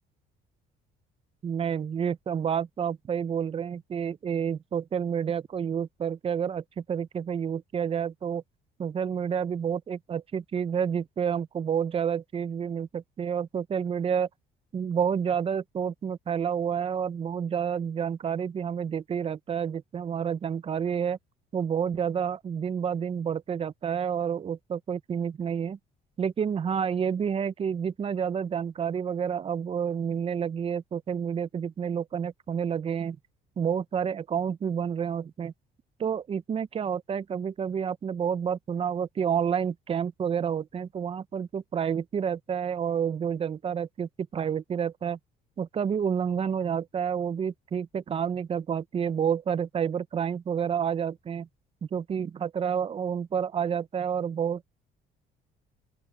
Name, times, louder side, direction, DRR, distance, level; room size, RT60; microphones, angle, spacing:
voice 1, 1.4-8.4 8.8-14.3 14.7-21.2 21.5-25.8 26.2-33.2 33.6-35.5 36.0-45.2 45.6-51.5 51.8-54.6, right 7 dB, 35° right, 0.7 m, -29 dB
open air
cardioid pair, 110°, 17 cm